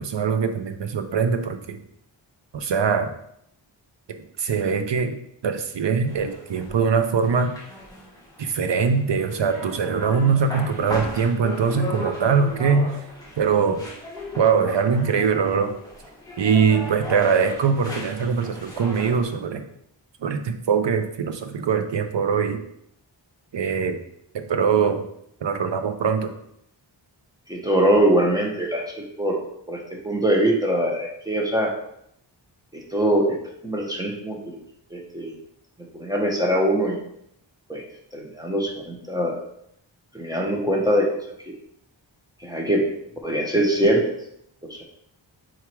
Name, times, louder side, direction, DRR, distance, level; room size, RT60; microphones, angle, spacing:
voice 1, 0.0-1.8 2.5-3.1 4.1-5.1 5.4-7.5 8.4-12.9 13.4-13.8 14.4-15.7 16.4-19.6 20.2-22.6 23.5-24.0 24.3-25.0 25.4-26.3, right 6 dB, 65° right, 7 dB, 0.8 m, -22 dB
sound 1, 6.1-19.3, left 1 dB, 10° left, 1.6 m, -37 dB
voice 2, 27.5-29.4 29.7-29.8 30.0-31.7 32.7-33.4 33.6-34.6 34.9-35.3 35.9-37.0 37.7-37.8 38.1-39.4 40.1-41.1 41.5-41.6 42.4-42.8 43.2-44.0 44.7-44.8, right 1 dB, 10° right, -1 dB, 1.3 m, -22 dB
4.8 x 4.6 x 4.6 m, 0.74 s
wide cardioid pair, 90°, 46 cm